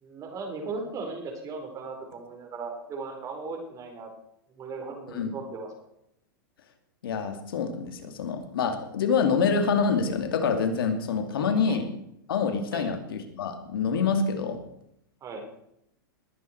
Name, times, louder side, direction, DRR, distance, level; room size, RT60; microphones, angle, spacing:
voice 1, 0.0-4.1 4.6-5.7 11.4-11.8 12.7-12.9 15.2-15.4, right 4 dB, 30° right, 3 dB, 4.5 m, -37 dB
voice 2, 7.0-11.9 12.3-14.6, left 5 dB, 75° left, 6 dB, 2.5 m, -26 dB
20.0 x 9.0 x 4.6 m, 0.76 s
hypercardioid pair, 125°, 12 cm